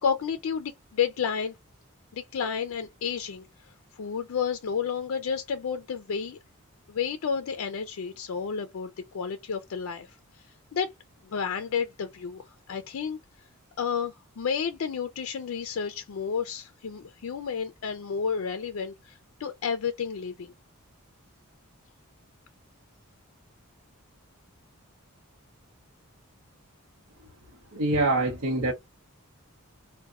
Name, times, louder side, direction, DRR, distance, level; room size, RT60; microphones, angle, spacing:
voice 1, 0.0-1.6 2.1-6.4 6.9-10.1 10.4-10.9 11.2-13.2 13.8-20.5, left 6 dB, 70° left, 0.4 m, -31 dB
voice 2, 27.7-28.7, right 2 dB, 85° right, 0.8 m, -25 dB
4.0 x 2.1 x 2.4 m
head